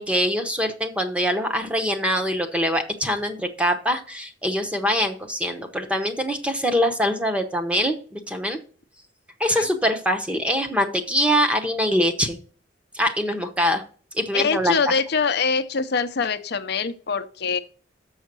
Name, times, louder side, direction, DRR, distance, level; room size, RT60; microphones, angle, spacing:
voice 1, 0.0-8.6 9.4-12.4 12.9-13.8 14.1-14.8, equal, 5° right, 7 dB, 0.9 m, -23 dB
voice 2, 14.3-17.6, left 5 dB, 60° left, 9 dB, 0.6 m, -24 dB
6.4 x 6.3 x 6.0 m, 0.42 s
head